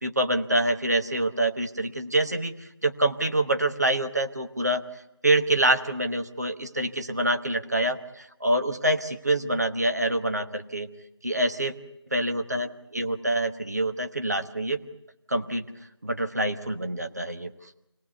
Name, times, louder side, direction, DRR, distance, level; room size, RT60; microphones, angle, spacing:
voice 1, 0.0-2.5 2.8-4.8 5.2-10.9 11.2-11.7 12.1-14.8 15.3-15.6 16.0-17.5, right 1 dB, 35° right, 7 dB, 1.2 m, -26 dB
26.0 x 18.0 x 8.2 m, 0.87 s
figure-of-eight pair, 175°, 15 cm